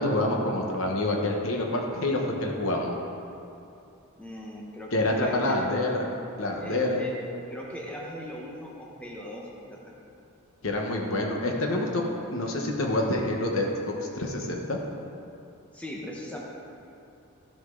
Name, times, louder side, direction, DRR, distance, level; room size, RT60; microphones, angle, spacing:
voice 1, 0.0-2.9 4.9-6.1 6.4-7.0 10.6-12.0 12.3-13.7 14.0-14.8, left 1 dB, 65° left, 1 dB, 1.1 m, -27 dB
voice 2, 4.2-5.7 6.6-7.2 7.5-9.8 15.7-16.4, equal, 5° left, -3 dB, 1.0 m, -39 dB
13.0 x 6.5 x 3.8 m, 2.7 s
head